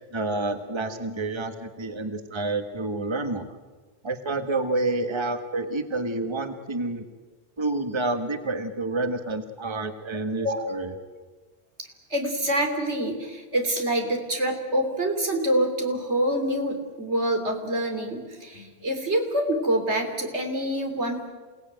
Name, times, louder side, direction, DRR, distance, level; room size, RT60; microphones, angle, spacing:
voice 1, 0.1-3.6 4.0-7.0 7.6-10.9, right 2 dB, 25° right, 8 dB, 1.4 m, -29 dB
voice 2, 12.1-21.3, right 1 dB, 85° right, 4 dB, 3.6 m, -26 dB
28.0 x 18.0 x 9.0 m, 1.4 s
omnidirectional pair, 1.1 m